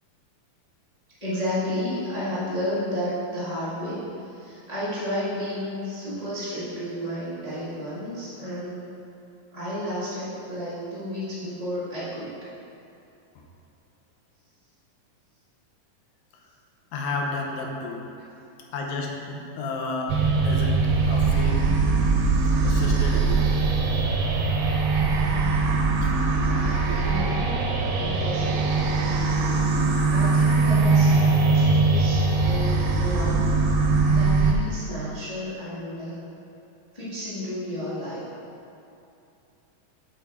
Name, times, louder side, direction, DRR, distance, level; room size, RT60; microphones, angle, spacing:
voice 1, 1.2-8.8 9.5-12.3 27.0-27.7 28.0-28.7 30.1-33.6 34.0-36.2 36.9-38.2, left 1 dB, 50° left, -12 dB, 0.4 m, -32 dB
voice 2, 16.9-18.0 18.7-21.7 22.6-23.5 26.0-26.1, left 3 dB, 85° left, 0 dB, 2.6 m, -32 dB
sound 1, 20.1-34.5, right 3 dB, 90° right, 2.4 m, -21 dB
7.1 x 5.4 x 4.4 m, 2.8 s
omnidirectional pair, 4.0 m